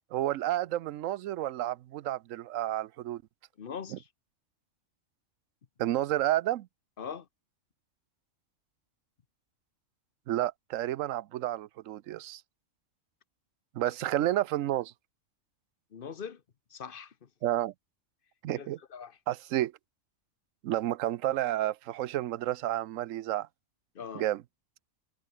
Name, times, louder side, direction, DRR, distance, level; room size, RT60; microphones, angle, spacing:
voice 1, 0.1-3.2 3.9-4.0 5.8-6.7 10.3-12.4 13.7-14.9 17.4-17.7 18.4-18.8 19.3-19.7 20.6-23.5 24.1-24.4, right 14 dB, 90° right, 1.0 m, -30 dB
voice 2, 3.6-4.1 7.0-7.3 15.9-16.4 16.7-17.3 18.5-19.2 23.9-24.3, left 7 dB, 45° left, 1.1 m, -41 dB
omnidirectional pair, 1.3 m